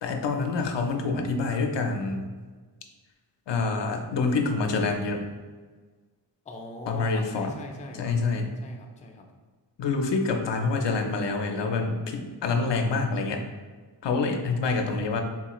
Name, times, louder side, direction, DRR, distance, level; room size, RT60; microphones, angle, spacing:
voice 1, 0.0-2.3 3.5-5.2 6.9-7.5 8.0-8.5 9.8-13.4 14.0-15.2, left 3 dB, 80° left, 4 dB, 0.5 m, -26 dB
voice 2, 6.5-8.1 8.6-9.3, left 2 dB, 20° left, 2 dB, 0.4 m, -41 dB
3.8 x 2.4 x 2.9 m, 1.4 s
wide cardioid pair, 85°, 42 cm